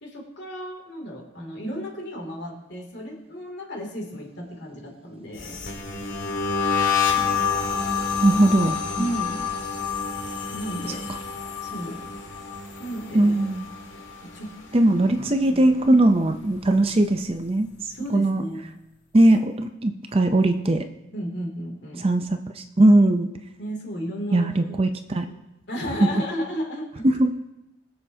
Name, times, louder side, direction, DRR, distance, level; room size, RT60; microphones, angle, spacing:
voice 1, 0.0-5.6 9.0-9.5 10.5-11.1 11.6-12.1 12.8-13.5 14.3-16.0 17.9-18.6 21.1-22.0 23.6-24.8 25.3-25.4 25.7-27.1, equal, 55° left, 1 dB, 2.7 m, -34 dB
sound 1, 5.4-14.5 14.8-15.3 15.6-17.1, left 6 dB, 70° left, 1.8 m, -28 dB
voice 2, 8.2-9.1 13.1-13.7 14.7-17.7 18.1-18.4 19.1-20.9 22.0-22.2 22.6-23.3 24.3-25.2 27.0-27.3, right 1 dB, 30° right, 7 dB, 0.5 m, -19 dB
22.0 x 7.7 x 2.8 m, 0.96 s
head